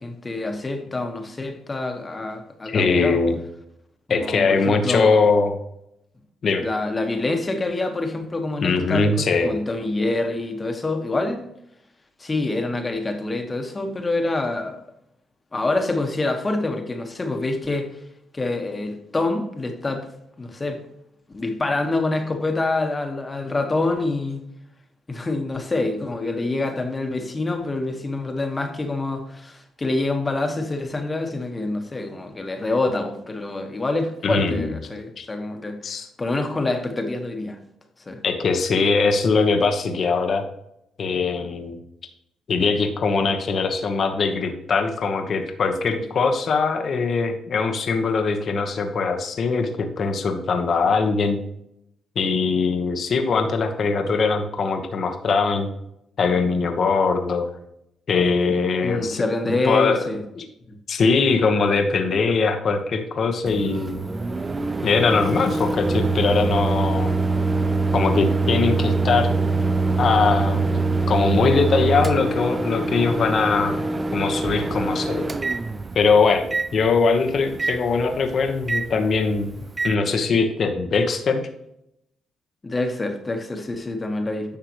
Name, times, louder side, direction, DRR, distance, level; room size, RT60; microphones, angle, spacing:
voice 1, 0.0-3.2 4.1-5.2 6.6-11.4 12.2-14.8 15.5-17.9 18.3-20.1 20.4-20.8 21.3-24.4 25.1-35.8 36.2-37.6 38.0-38.2 58.8-60.2 82.6-84.6, left 2 dB, 25° left, 1.4 m, -26 dB
voice 2, 2.6-3.4 4.1-5.6 6.4-6.6 8.6-9.6 34.2-34.7 35.2-35.3 35.8-36.1 38.2-40.4 41.0-41.8 42.5-51.4 52.1-55.7 56.2-57.5 58.1-60.1 60.4-60.5 60.9-64.0 64.8-67.1 67.9-69.3 70.0-70.8 71.1-73.8 74.1-75.3 75.9-81.5, left 4 dB, 55° left, 1.2 m, -21 dB
Microwave oven, 63.5-79.9, right 3 dB, 25° right, 0.5 m, -24 dB
10.5 x 6.5 x 3.1 m
cardioid pair, 90°, 0 cm